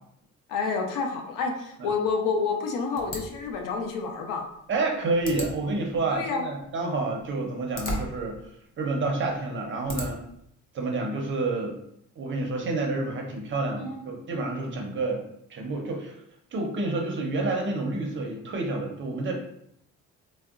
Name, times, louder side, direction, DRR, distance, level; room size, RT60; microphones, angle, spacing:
voice 1, 0.5-4.5 6.1-6.4 13.8-14.0, left 4 dB, 85° left, 3 dB, 0.5 m, -29 dB
sound 1, 3.0-10.4, equal, 40° left, 0.6 m, -40 dB
voice 2, 4.7-8.4 8.8-10.2 10.7-11.8 12.2-15.2 15.5-16.2 16.5-19.3, right 2 dB, 40° right, 1 dB, 0.6 m, -29 dB
3.6 x 2.1 x 2.4 m, 0.73 s
cardioid pair, 145°, 31 cm